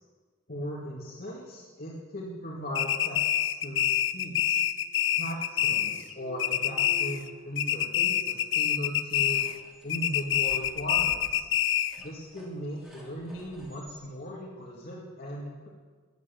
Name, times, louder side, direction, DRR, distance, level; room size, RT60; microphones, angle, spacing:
voice 1, 0.5-4.6 5.1-9.5 9.8-11.5 12.0-15.7, equal, 50° left, -4 dB, 2.2 m, -38 dB
sound 1, 2.7-6.1 6.4-7.3 7.6-9.6 9.9-12.0, left 10 dB, 75° left, 0.6 m, -26 dB
sound 2, 3.4-4.4 4.7-5.6 5.9-7.5, right 1 dB, 70° right, 1.3 m, -50 dB
sound 3, 9.1-14.0, equal, 5° right, 2.7 m, -53 dB
12.5 x 9.4 x 8.6 m, 1.4 s
head